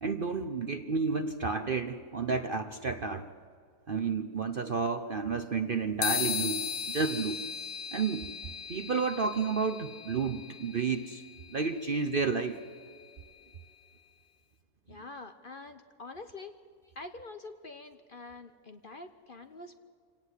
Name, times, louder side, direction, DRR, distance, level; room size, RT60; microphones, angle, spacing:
voice 1, 0.0-3.3 3.9-7.4 7.9-8.3 8.7-11.2 11.5-12.6, right 5 dB, 45° right, 8 dB, 0.8 m, -31 dB
sound 1, 6.0-13.7, left 7 dB, 60° left, 1.2 m, -38 dB
voice 2, 14.9-16.6 16.9-19.8, left 3 dB, 40° left, 8 dB, 1.0 m, -46 dB
27.0 x 18.0 x 8.2 m, 2.2 s
omnidirectional pair, 1.7 m